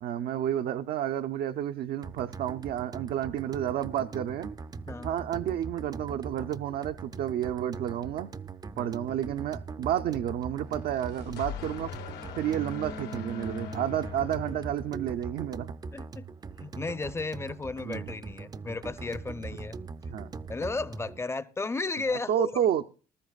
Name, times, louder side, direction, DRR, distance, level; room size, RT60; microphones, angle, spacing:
voice 1, 0.0-4.5 5.0-8.3 8.8-11.9 12.3-15.7 17.9-18.1 20.1-20.3 22.3-22.9, right 10 dB, 65° right, 0.6 m, -30 dB
sound 1, 2.0-21.2, right 4 dB, 25° right, 0.5 m, -41 dB
sound 2, 10.7-15.2, left 5 dB, 75° left, 1.3 m, -40 dB
voice 2, 15.9-16.3 16.6-19.8 20.5-22.6, left 3 dB, 15° left, 0.7 m, -34 dB
19.5 x 13.0 x 2.4 m
cardioid pair, 110°, 17 cm